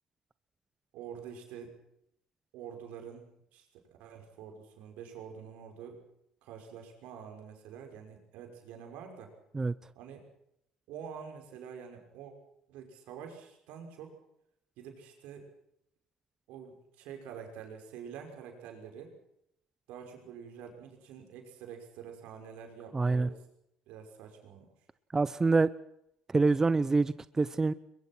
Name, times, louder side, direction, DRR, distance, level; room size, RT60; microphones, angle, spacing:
voice 1, 0.9-1.7 2.5-3.7 4.0-6.0 6.4-9.3 9.9-10.3 10.9-12.3 12.7-14.2 14.8-15.5 16.5-19.2 19.9-23.4 23.9-24.7, right 7 dB, 80° right, 4 dB, 5.8 m, -47 dB
voice 2, 22.9-23.3 25.1-25.7 26.3-27.7, right 3 dB, 20° right, 16 dB, 0.8 m, -26 dB
22.0 x 22.0 x 6.2 m, 0.75 s
supercardioid pair, 80°, 2 cm